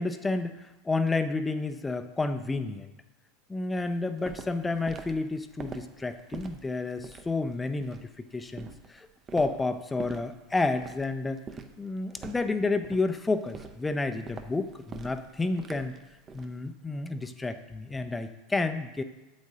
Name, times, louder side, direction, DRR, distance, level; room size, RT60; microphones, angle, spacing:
voice 1, 0.0-2.9 3.5-9.1 9.3-11.4 11.8-15.9 16.3-19.0, left 3 dB, 15° left, 8 dB, 0.5 m, -30 dB
Walk footsteps, 3.8-16.6, right 5 dB, 30° right, 0.6 m, -45 dB
8.2 x 8.0 x 2.8 m, 1.0 s
figure-of-eight pair, 80°, 0 cm